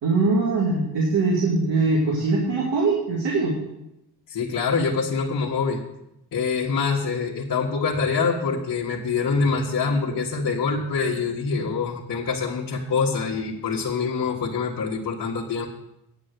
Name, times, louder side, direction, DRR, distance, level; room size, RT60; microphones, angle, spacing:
voice 1, 0.0-3.6, right 3 dB, 80° right, -2 dB, 2.5 m, -22 dB
voice 2, 4.3-5.8 6.3-15.7, left 5 dB, 55° left, -5 dB, 1.6 m, -25 dB
9.3 x 7.4 x 8.1 m, 0.87 s
cardioid pair, 130°, 40 cm